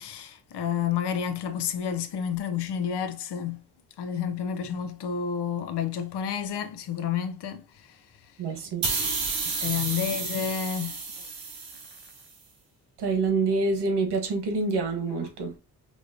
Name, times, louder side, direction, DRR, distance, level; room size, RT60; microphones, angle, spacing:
voice 1, 0.0-3.6 4.0-8.0 9.5-11.0 15.1-15.2, left 8 dB, 85° left, 0.7 m, -30 dB
voice 2, 8.4-8.8 13.0-15.5, right 3 dB, 85° right, 1.2 m, -26 dB
sound 1, 8.8-12.2, right 4 dB, 60° right, 2.0 m, -31 dB
5.3 x 3.1 x 2.7 m
wide cardioid pair, 165°, 40 cm